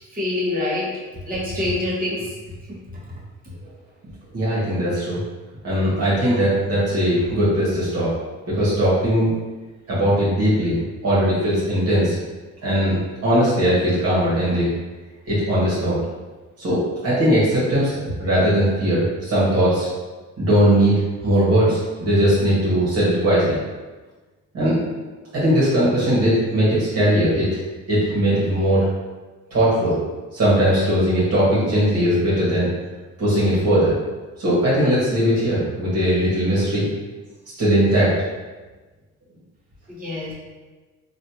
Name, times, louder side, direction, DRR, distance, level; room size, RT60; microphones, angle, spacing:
voice 1, 0.1-0.9 1.3-2.3 2.7-3.0 39.9-40.3, left 2 dB, 30° right, -6 dB, 1.3 m, -25 dB
voice 2, 4.3-5.2 5.6-8.1 8.5-9.3 9.9-12.2 12.6-13.0 13.2-14.7 15.3-16.0 16.6-17.9 18.2-19.9 20.4-23.6 24.5-24.8 25.3-27.6 27.9-28.9 29.5-30.0 30.3-32.7 33.2-33.9 34.4-36.9 37.6-38.1, equal, 55° right, -9 dB, 1.5 m, -19 dB
3.2 x 2.6 x 2.8 m, 1.3 s
cardioid pair, 90°, 30 cm